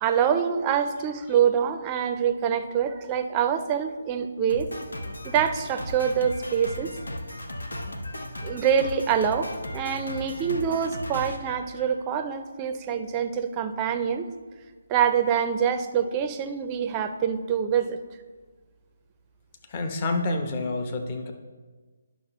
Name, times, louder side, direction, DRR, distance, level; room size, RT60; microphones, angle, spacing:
voice 1, 0.0-4.7 5.2-6.9 8.4-14.3 14.9-18.0, right 8 dB, 20° right, 8 dB, 0.5 m, -25 dB
Drum kit, 4.5-12.3, left 1 dB, 90° left, 0.9 m, -36 dB
voice 2, 19.7-21.3, left 2 dB, 35° left, 4 dB, 0.8 m, -28 dB
11.0 x 5.9 x 3.0 m, 1.4 s
figure-of-eight pair, 155°, 0 cm